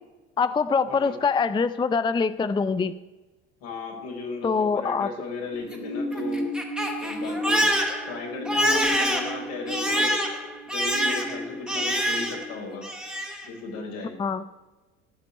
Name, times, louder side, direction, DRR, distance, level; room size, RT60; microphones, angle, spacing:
voice 1, 0.4-2.9 4.4-5.1 14.2-14.4, left 5 dB, 15° left, 13 dB, 0.5 m, -24 dB
voice 2, 3.6-6.5 7.0-7.7 8.1-10.2 10.6-12.8 13.4-14.1, left 3 dB, 70° left, 0 dB, 4.5 m, -35 dB
Crying sobbing, 5.5-12.5 12.8-13.5, equal, 5° right, 2.6 m, -26 dB
14.0 x 6.0 x 9.6 m, 1.2 s
hypercardioid pair, 70°, 35 cm